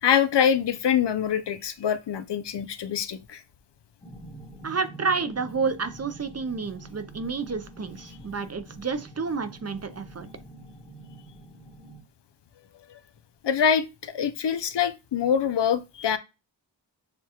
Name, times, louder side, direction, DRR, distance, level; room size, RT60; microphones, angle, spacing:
voice 1, 0.0-3.4 12.9-13.0 13.4-16.2, left 8 dB, 70° left, 0.5 m, -24 dB
sound 1, 4.0-12.0, right 1 dB, 15° left, 1.0 m, -46 dB
voice 2, 4.6-10.3, right 4 dB, 35° right, 0.5 m, -30 dB
6.6 x 2.2 x 2.9 m
wide cardioid pair, 85°, 44 cm